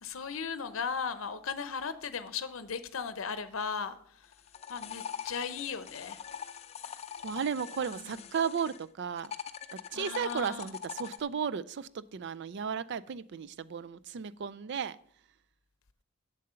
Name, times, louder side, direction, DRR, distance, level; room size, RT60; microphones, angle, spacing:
voice 1, 0.0-4.3 4.7-6.2 7.9-8.2 9.9-10.7, left 6 dB, 75° left, 0.7 m, -37 dB
sound 1, 4.2-8.8 9.2-11.2, left 8 dB, 30° left, 0.5 m, -43 dB
voice 2, 7.2-9.3 9.7-15.0, right 7 dB, 55° right, 0.4 m, -34 dB
7.6 x 7.6 x 5.6 m
head